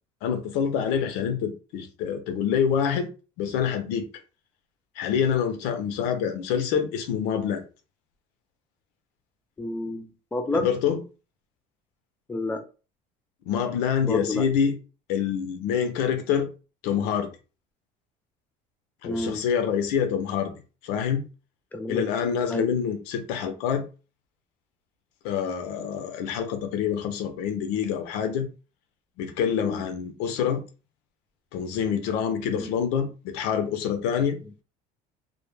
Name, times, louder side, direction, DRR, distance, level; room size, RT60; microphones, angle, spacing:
voice 1, 0.2-3.1 3.4-4.1 5.0-7.6 10.5-11.0 13.5-14.8 15.1-16.5 16.8-17.3 19.0-20.5 20.8-21.2 21.9-23.8 25.2-28.5 29.2-30.6 31.5-34.4, left 7 dB, 85° left, 0.6 m, -26 dB
voice 2, 9.6-10.7 12.3-12.6 14.0-14.4 19.0-19.4 21.7-22.1 22.5-22.7 29.6-29.8 32.6-32.7, left 2 dB, 10° left, 0.4 m, -29 dB
2.2 x 2.1 x 3.2 m
cardioid pair, 140°, 16 cm